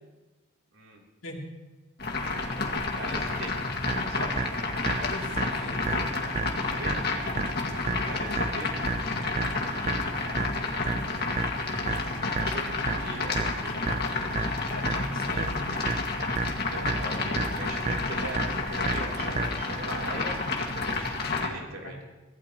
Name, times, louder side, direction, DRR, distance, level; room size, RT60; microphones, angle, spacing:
voice 1, 1.2-1.5 5.0-6.2 14.7-15.7 21.8-22.0, left 1 dB, 75° left, -1 dB, 2.9 m, -40 dB
sound 1, 2.0-21.5, left 3 dB, 50° left, 2.0 m, -30 dB
voice 2, 2.9-3.6 4.1-4.4 6.8-7.0 8.0-8.7 12.4-13.9 16.5-22.0, right 2 dB, 90° right, -2 dB, 3.5 m, -40 dB
sound 2, 3.9-19.8, right 4 dB, 30° right, 0.5 m, -33 dB
24.0 x 15.5 x 3.0 m, 1.1 s
head